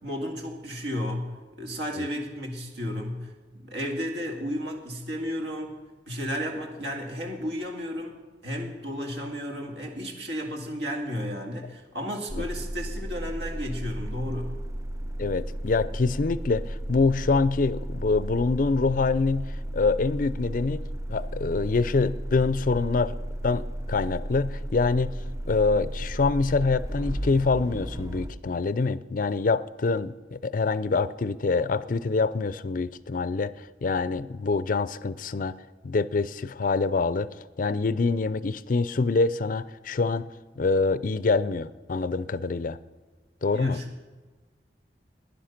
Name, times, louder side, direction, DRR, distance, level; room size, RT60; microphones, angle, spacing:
voice 1, 0.0-5.8 6.1-8.2 8.4-14.6 43.5-44.0, equal, 75° right, 2 dB, 2.2 m, -33 dB
sound 1, 12.3-28.3, right 1 dB, 20° right, 0.5 m, -34 dB
voice 2, 15.2-20.8 21.1-23.2 23.4-25.1 25.5-35.6 35.8-40.3 40.6-42.8 43.4-43.8, left 3 dB, 50° left, 16 dB, 0.5 m, -25 dB
15.5 x 10.5 x 5.9 m, 1.3 s
head